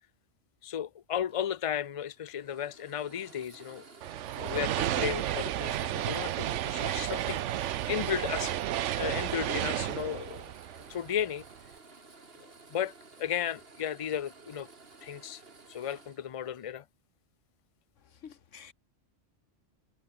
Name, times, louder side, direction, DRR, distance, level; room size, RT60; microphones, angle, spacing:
voice 1, 0.6-3.8 4.3-8.5 9.0-10.5 10.9-11.4 12.7-12.9 13.2-14.7 15.0-15.4 15.7-16.8, left 9 dB, 40° left, 0.5 m, -34 dB
sound 1, 1.3-16.8, right 3 dB, 50° right, 2.5 m, -54 dB
sound 2, 4.0-11.4, right 13 dB, 75° right, 0.9 m, -32 dB
voice 2, 18.0-18.7, left 7 dB, 80° left, 1.6 m, -50 dB
omnidirectional pair, 1.3 m